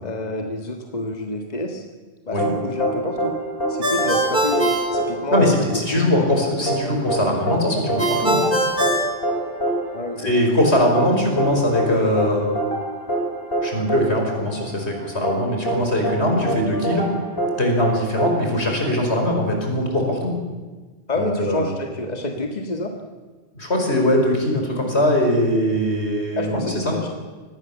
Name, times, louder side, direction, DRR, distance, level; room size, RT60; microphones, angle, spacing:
voice 1, 0.0-1.8 2.3-3.3 3.7-5.5 5.9-6.0 9.9-10.3 21.1-22.9 26.4-27.1, left 2 dB, 40° left, 3 dB, 1.9 m, -28 dB
sound 1, 2.4-19.2, right 1 dB, 60° left, 4.9 m, -26 dB
Ringtone, 3.8-5.8 8.0-9.9, equal, 50° right, 5.4 m, -22 dB
voice 2, 5.3-8.4 10.2-12.5 13.6-17.1 17.6-20.3 21.1-21.7 23.5-27.0, left 1 dB, 75° left, 2 dB, 5.5 m, -21 dB
25.0 x 19.5 x 7.3 m, 1.3 s
omnidirectional pair, 1.1 m